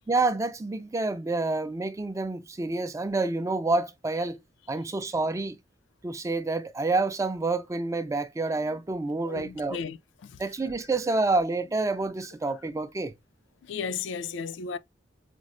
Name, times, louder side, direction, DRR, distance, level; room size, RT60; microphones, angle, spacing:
voice 1, 0.1-4.4 4.7-5.6 6.0-9.8 10.4-13.1, right 3 dB, 15° right, 0.3 m, -28 dB
voice 2, 9.2-10.4 13.6-14.8, left 5 dB, 75° left, 0.4 m, -35 dB
5.1 x 2.0 x 2.4 m
head